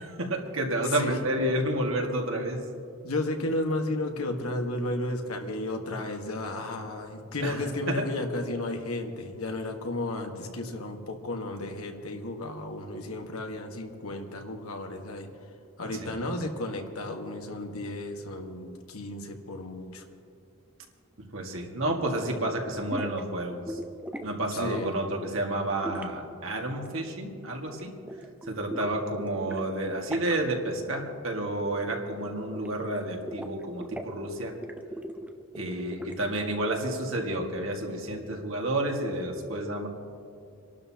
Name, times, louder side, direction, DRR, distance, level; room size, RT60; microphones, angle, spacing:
voice 1, 0.0-2.6 7.4-8.0 16.0-16.1 21.3-23.8 24.2-27.9 28.5-34.5 35.6-39.9, right 1 dB, 70° right, 1 dB, 1.8 m, -30 dB
voice 2, 0.8-1.2 3.0-15.3 15.8-20.0 24.5-24.9, left 2 dB, 90° left, 4 dB, 1.5 m, -33 dB
sound 1, 22.9-23.2 23.7-24.3 24.7-25.0 25.8-27.3 27.6-27.8 28.1-29.6 29.9-30.3 30.7-30.8 31.1-31.6 31.8-33.0 33.3-34.2 34.5-36.4, right 1 dB, 5° right, 0.6 m, -39 dB
28.0 x 12.0 x 2.9 m, 2.4 s
head